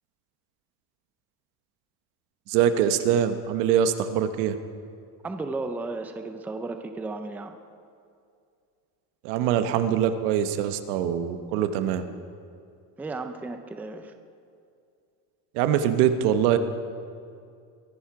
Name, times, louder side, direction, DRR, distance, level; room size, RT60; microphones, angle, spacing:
voice 1, 2.5-4.6 9.2-12.1 15.5-16.6, right 9 dB, 85° right, 9 dB, 1.2 m, -23 dB
voice 2, 5.2-7.6 13.0-14.1, right 3 dB, 5° right, 7 dB, 0.4 m, -34 dB
22.5 x 10.5 x 4.9 m, 2.4 s
cardioid pair, 150°, 44 cm